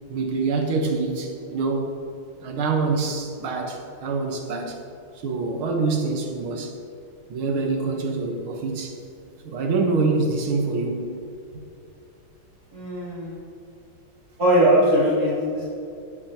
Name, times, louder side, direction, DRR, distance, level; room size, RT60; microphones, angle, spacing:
voice 1, 0.1-2.0 2.4-4.8 5.2-6.7 7.3-9.0 9.4-11.1, right 3 dB, 85° right, 2 dB, 2.1 m, -25 dB
voice 2, 12.7-13.4 14.4-15.6, right 1 dB, 50° right, -10 dB, 3.5 m, -20 dB
15.5 x 9.5 x 2.9 m, 2.6 s
omnidirectional pair, 2.2 m